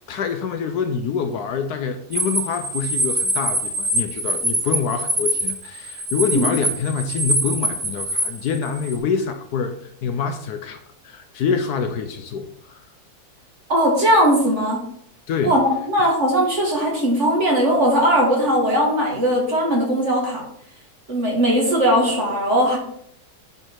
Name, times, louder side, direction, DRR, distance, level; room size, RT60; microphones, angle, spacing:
voice 1, 0.1-9.8 10.0-12.8 15.3-15.6, left 6 dB, 70° left, 7 dB, 1.1 m, -26 dB
sound 1, 2.1-9.0, right 1 dB, 25° right, 1.7 m, -24 dB
voice 2, 13.7-14.8 15.4-20.4 21.1-22.8, equal, 40° right, -2 dB, 2.6 m, -19 dB
10.0 x 4.3 x 4.6 m, 0.71 s
omnidirectional pair, 1.9 m